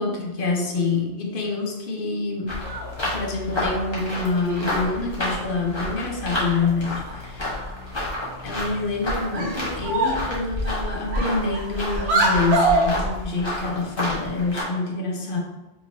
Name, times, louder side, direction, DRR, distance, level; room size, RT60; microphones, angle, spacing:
voice 1, 0.0-2.6 3.1-7.5 8.4-15.4, left 3 dB, 55° left, 0 dB, 0.9 m, -26 dB
sound 1, 2.5-14.6, left 1 dB, 25° left, 1.3 m, -30 dB
sound 2, 2.5-3.0 4.1-4.9 6.1-6.2 6.6-6.7 7.1-7.2 7.4-8.1 8.7-8.9 9.3-10.3 10.6-12.9, right 2 dB, 65° right, 1.0 m, -25 dB
4.7 x 3.8 x 2.7 m, 1.1 s
omnidirectional pair, 1.2 m